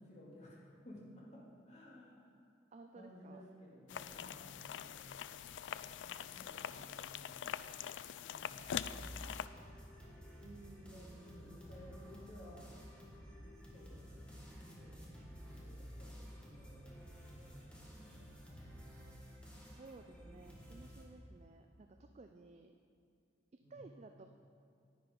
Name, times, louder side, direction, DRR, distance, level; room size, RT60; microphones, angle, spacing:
voice 1, 0.0-2.3 2.9-5.2 6.0-7.6 8.2-8.8 10.9-12.7 13.7-14.3 14.8-18.2 23.6-23.8, equal, 40° left, -5 dB, 2.3 m, -57 dB
voice 2, 2.7-3.4 10.4-11.5 19.6-22.7 23.7-24.3, right 3 dB, 35° right, 5 dB, 0.4 m, -56 dB
sound 1, 3.9-9.5, left 9 dB, 80° left, 0.3 m, -44 dB
sound 2, 8.5-21.0, equal, 5° left, 1.7 m, -53 dB
10.5 x 9.6 x 5.2 m, 2.5 s
head